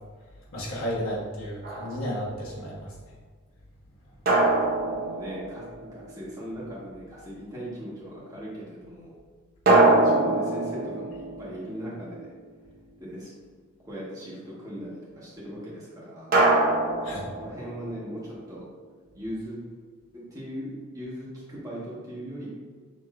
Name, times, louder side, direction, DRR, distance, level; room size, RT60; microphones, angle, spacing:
voice 1, 0.5-3.0 17.0-17.3, equal, 75° left, -6 dB, 1.3 m, -33 dB
sound 1, 1.6-2.2 4.3-6.1 9.7-12.3 16.3-18.0, right 2 dB, 45° right, 0.8 m, -23 dB
voice 2, 4.9-9.1 9.6-12.3 13.0-13.3 13.8-16.3 17.0-18.6 19.1-19.6 20.1-22.5, equal, 15° right, -7 dB, 1.3 m, -39 dB
6.4 x 3.0 x 2.5 m, 1.5 s
head